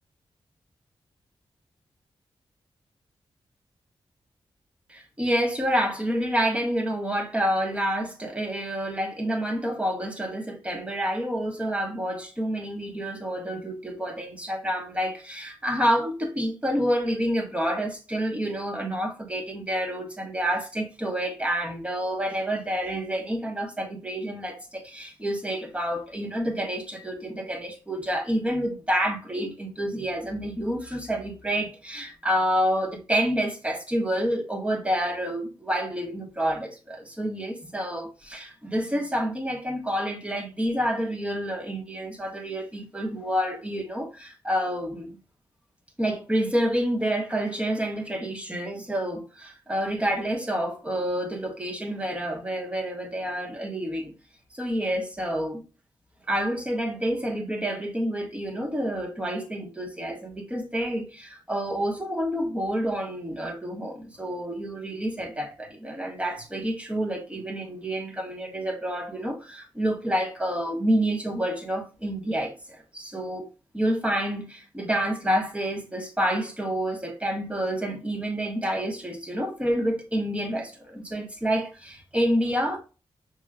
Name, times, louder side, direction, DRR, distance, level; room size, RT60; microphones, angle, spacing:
voice 1, 4.9-45.2 46.0-54.1 54.5-55.6 56.3-73.5 73.7-82.8, equal, 10° right, 1.2 m, -28 dB
6.2 x 3.0 x 2.3 m
wide cardioid pair, 95°, 10 cm